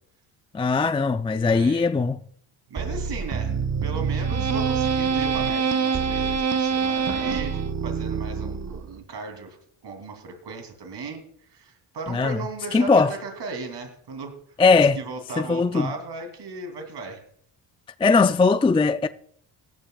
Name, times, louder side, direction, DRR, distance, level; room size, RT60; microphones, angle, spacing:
voice 1, 0.5-2.2 12.1-12.4 12.7-13.1 14.6-15.0 15.4-15.9 18.0-19.1, left 4 dB, 10° left, 0.4 m, -19 dB
voice 2, 1.4-1.9 2.7-9.6 9.8-17.2, right 4 dB, 55° right, 3.0 m, -36 dB
sound 1, 2.8-9.0, right 6 dB, 35° right, 1.0 m, -25 dB
18.0 x 12.0 x 2.3 m
supercardioid pair, 70°, 48 cm